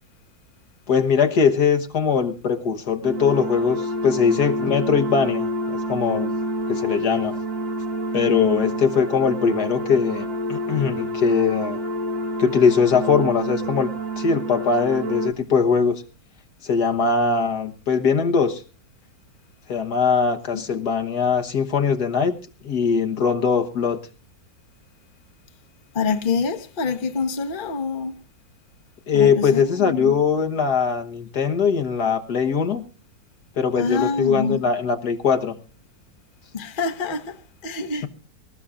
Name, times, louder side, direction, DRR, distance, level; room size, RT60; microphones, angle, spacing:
voice 1, 0.9-6.3 6.7-7.4 8.1-11.8 12.4-16.0 16.6-18.6 19.7-22.3 22.6-24.0 29.1-32.8 33.6-35.5, left 6 dB, 60° left, 1.7 m, -21 dB
sound 1, 3.0-15.3, equal, 80° right, 2.4 m, -28 dB
voice 2, 25.9-28.1 29.1-30.1 33.8-34.6 36.5-38.1, left 5 dB, 30° left, 1.2 m, -26 dB
25.5 x 14.0 x 2.5 m
omnidirectional pair, 2.0 m